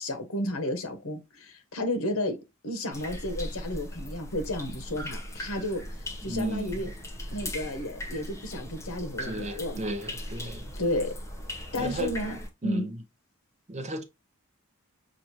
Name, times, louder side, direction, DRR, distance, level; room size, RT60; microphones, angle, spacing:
voice 1, 0.0-2.4 2.6-6.9 7.3-9.9 10.8-11.1 11.7-12.9, left 1 dB, 85° left, 1.0 m, -32 dB
sound 1, 2.9-12.5, left 1 dB, 15° left, 0.7 m, -38 dB
voice 2, 6.3-6.8 9.2-10.6 11.7-12.1 12.6-13.0 13.7-14.0, right 1 dB, 30° right, 0.6 m, -34 dB
6.2 x 2.5 x 2.8 m
head